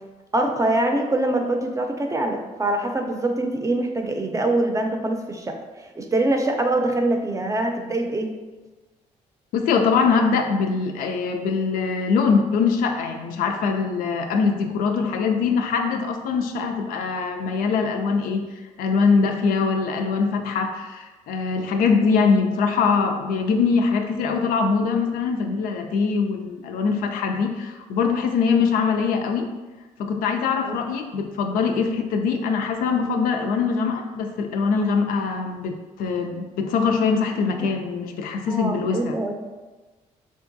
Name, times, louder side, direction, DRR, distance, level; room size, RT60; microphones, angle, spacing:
voice 1, 0.3-8.3 30.6-30.7 38.5-39.3, right 2 dB, 20° right, 3 dB, 0.5 m, -24 dB
voice 2, 9.5-18.4 18.8-29.5 30.0-39.2, left 5 dB, 80° left, 4 dB, 0.4 m, -22 dB
3.7 x 2.4 x 2.6 m, 1.2 s
supercardioid pair, 60°, 15 cm